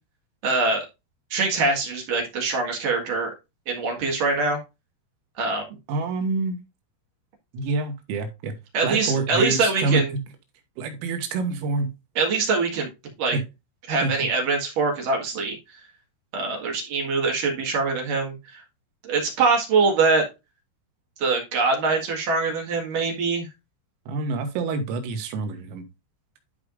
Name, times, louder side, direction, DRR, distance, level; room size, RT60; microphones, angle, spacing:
voice 1, 0.4-0.9 1.3-3.3 3.7-4.6 5.4-5.6 8.7-10.1 12.2-12.9 13.2-13.4 13.9-15.6 16.3-18.6 19.0-20.3 21.2-23.5, right 4 dB, 55° right, 0 dB, 2.7 m, -23 dB
voice 2, 5.9-6.6 7.5-8.5 8.8-10.0 10.8-11.9 13.3-13.4 14.0-14.1 24.1-25.8, right 3 dB, 85° right, 5 dB, 4.0 m, -27 dB
13.0 x 4.9 x 2.5 m, 0.25 s
omnidirectional pair, 5.8 m